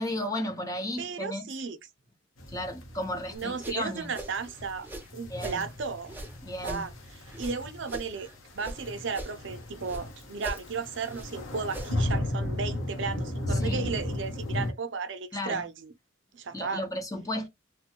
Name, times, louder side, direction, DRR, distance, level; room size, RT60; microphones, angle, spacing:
voice 1, 0.0-1.5 2.5-4.1 5.3-5.7 6.4-6.9 13.5-13.9 15.3-15.6 16.5-17.5, left 1 dB, 20° left, 0.7 m, -34 dB
voice 2, 1.0-1.8 3.3-6.1 6.6-6.9 7.4-8.3 8.5-15.9 16.3-16.8, right 5 dB, 65° right, 0.6 m, -34 dB
sound 1, 2.4-14.7, left 1 dB, 90° left, 1.0 m, -35 dB
sound 2, 3.4-5.6 6.0-8.8 9.1-10.1 10.4-12.2, right 1 dB, 10° right, 0.7 m, -41 dB
3.2 x 2.2 x 2.8 m
head